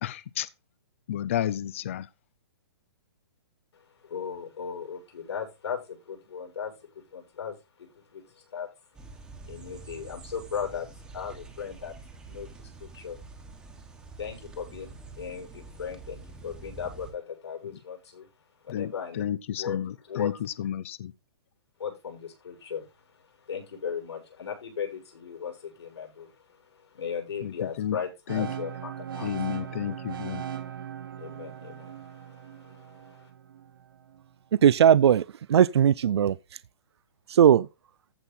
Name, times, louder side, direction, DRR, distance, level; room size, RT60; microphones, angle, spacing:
voice 1, 0.0-0.5 1.1-2.1 17.7-17.8 18.7-21.1 27.4-28.0 28.3-28.5 29.2-30.4, left 11 dB, 30° left, 0.4 m, -31 dB
voice 2, 3.7-8.7 9.4-11.9 12.3-13.2 14.2-18.3 18.6-19.2 19.6-19.8 20.1-20.4 21.8-30.0 31.2-33.3, left 7 dB, 85° left, 7.2 m, -37 dB
sound 1, 8.9-17.1, right 4 dB, 5° right, 1.3 m, -46 dB
sound 2, 28.3-34.2, right 9 dB, 55° right, 1.6 m, -39 dB
voice 3, 34.6-36.4 37.3-37.7, right 9 dB, 80° right, 0.4 m, -19 dB
14.5 x 5.6 x 4.2 m
hypercardioid pair, 180°, 14 cm